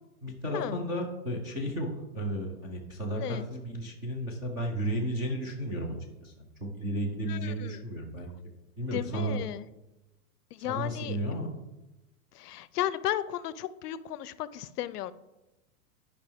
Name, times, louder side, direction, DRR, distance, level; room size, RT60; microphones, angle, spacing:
voice 1, 0.2-1.9 2.1-8.3 8.8-9.4 10.7-11.5, right 1 dB, 10° right, -1 dB, 0.4 m, -33 dB
voice 2, 7.3-7.8 8.9-9.7 10.5-11.2 12.3-15.1, left 12 dB, 85° left, 16 dB, 0.6 m, -34 dB
11.5 x 5.3 x 3.5 m, 1.0 s
supercardioid pair, 160°, 46 cm